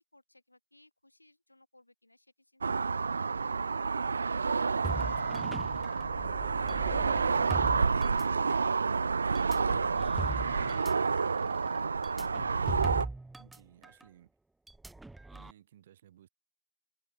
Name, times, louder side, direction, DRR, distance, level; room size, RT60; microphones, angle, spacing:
voice 1, 0.1-3.8 4.5-5.5 5.8-8.9 9.7-12.7, left 1 dB, 75° left, 7.7 m, -61 dB
sound 1, 2.6-13.1, right 5 dB, 55° right, 0.3 m, -29 dB
voice 2, 4.7-5.6 13.4-14.3 15.3-16.3, right 11 dB, 30° right, 3.3 m, -59 dB
sound 2, 4.8-8.7 9.4-13.6 13.8-14.0 14.7-15.5, right 2 dB, ahead, 0.7 m, -40 dB
open air
figure-of-eight pair, 145°, 0 cm